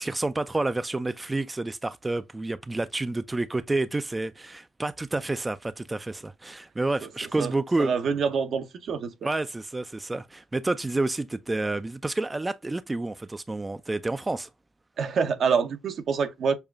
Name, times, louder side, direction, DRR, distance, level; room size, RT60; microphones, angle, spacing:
voice 1, 0.0-7.9 9.2-14.5, right 2 dB, 20° right, 0.4 m, -29 dB
voice 2, 7.8-9.1 15.0-16.5, right 6 dB, 65° right, 0.7 m, -26 dB
6.6 x 2.3 x 2.3 m
supercardioid pair, 65°, 0 cm